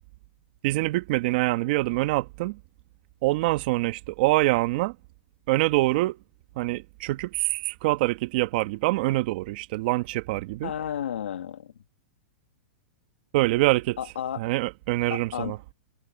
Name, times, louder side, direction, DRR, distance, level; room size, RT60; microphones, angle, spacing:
voice 1, 0.6-2.6 3.2-5.0 5.5-6.2 6.6-10.7 13.3-14.0 14.4-15.6, right 19 dB, 55° right, 1.6 m, -25 dB
voice 2, 10.6-11.7 14.0-14.4 15.1-15.7, left 9 dB, 90° left, 1.8 m, -32 dB
hypercardioid pair, 135°, 6 cm